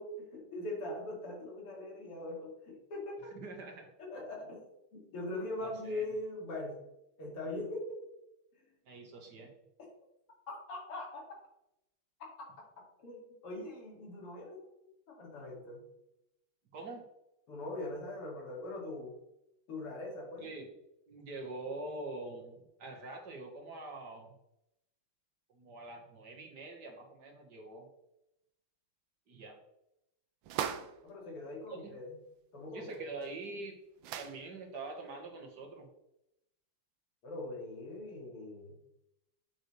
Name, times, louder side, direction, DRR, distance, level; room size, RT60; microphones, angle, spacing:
voice 1, 0.0-3.4 4.0-4.7 4.9-6.8 7.2-8.0 10.5-11.2 12.4-12.5 13.0-14.6 15.1-15.8 17.5-19.1 19.7-20.5 31.0-32.2 32.5-33.0 37.2-38.7, left 2 dB, 90° left, -2 dB, 3.4 m, -41 dB
voice 2, 3.3-3.9 5.6-6.1 8.9-9.5 16.7-17.0 20.4-20.7 21.1-24.3 25.5-27.9 29.3-29.6 32.7-33.8 34.2-35.9, right 2 dB, 55° right, 2 dB, 1.9 m, -44 dB
sound 1, 30.4-31.0 32.9-33.0 33.2-33.3 34.0-34.4, right 9 dB, 75° right, 1.3 m, -38 dB
8.2 x 7.4 x 3.3 m, 0.84 s
omnidirectional pair, 2.4 m